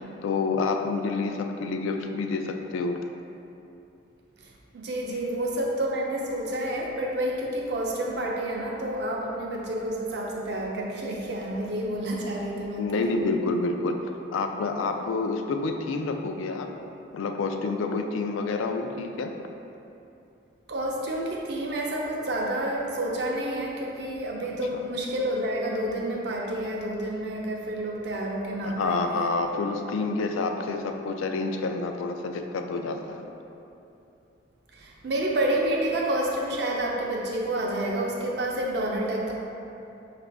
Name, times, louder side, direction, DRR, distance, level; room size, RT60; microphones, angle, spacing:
voice 1, 0.2-3.0 5.1-5.3 12.8-14.0 14.3-16.7 17.1-19.3 24.7-24.8 28.6-33.3, left 3 dB, 85° left, 5 dB, 0.3 m, -28 dB
voice 2, 4.4-13.1 20.7-29.0 34.7-39.3, right 1 dB, 60° right, -2 dB, 0.5 m, -29 dB
5.1 x 2.5 x 3.3 m, 2.8 s
head